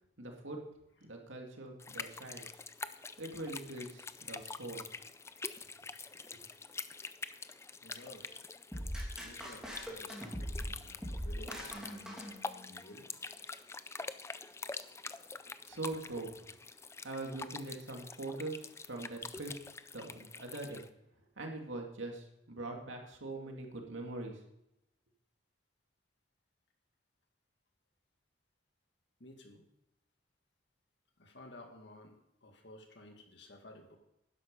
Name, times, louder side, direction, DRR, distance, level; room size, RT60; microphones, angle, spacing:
voice 1, 0.2-0.6 1.0-2.5 3.2-4.9 15.7-16.3 17.0-19.5 19.9-20.8 21.4-24.4, right 2 dB, 80° right, 2 dB, 2.3 m, -42 dB
sound 1, 1.8-20.9, left 4 dB, 15° left, 0.4 m, -46 dB
voice 2, 7.8-8.4 9.2-12.3 12.7-13.1 29.2-29.6 31.2-34.0, left 1 dB, 60° left, 3 dB, 2.1 m, -54 dB
sound 2, 8.7-12.9, equal, 5° right, 2.7 m, -41 dB
12.0 x 10.5 x 5.3 m, 0.86 s
head